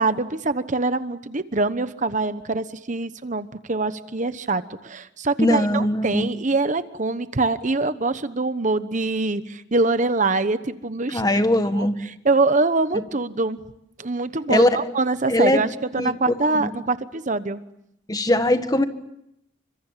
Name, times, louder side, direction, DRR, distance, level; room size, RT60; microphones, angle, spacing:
voice 1, 0.0-11.2 11.8-13.6 14.0-15.7 15.9-17.6, right 3 dB, 40° right, 12 dB, 1.0 m, -24 dB
voice 2, 5.4-6.3 11.1-12.0 14.5-14.8 15.3-15.6 16.0-16.7 18.1-18.8, left 1 dB, 20° left, 9 dB, 1.6 m, -20 dB
29.5 x 25.5 x 7.4 m, 0.78 s
head